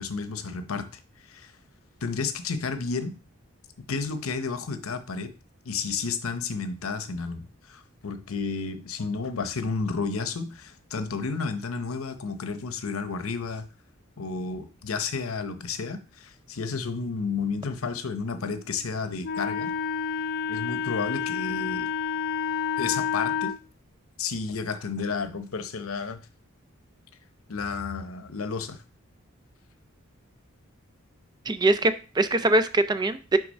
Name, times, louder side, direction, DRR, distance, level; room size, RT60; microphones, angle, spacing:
voice 1, 0.0-1.5 2.0-3.2 3.9-5.3 5.6-13.7 14.2-19.7 20.5-21.9 22.8-23.5 24.2-26.2 27.5-28.8, left 4 dB, 85° left, 10 dB, 0.8 m, -32 dB
Wind instrument woodwind instrument, 19.2-23.6, left 7 dB, 50° left, 0.4 m, -29 dB
voice 2, 31.5-33.4, right 2 dB, 20° right, 10 dB, 0.4 m, -22 dB
6.6 x 3.4 x 5.3 m, 0.33 s
head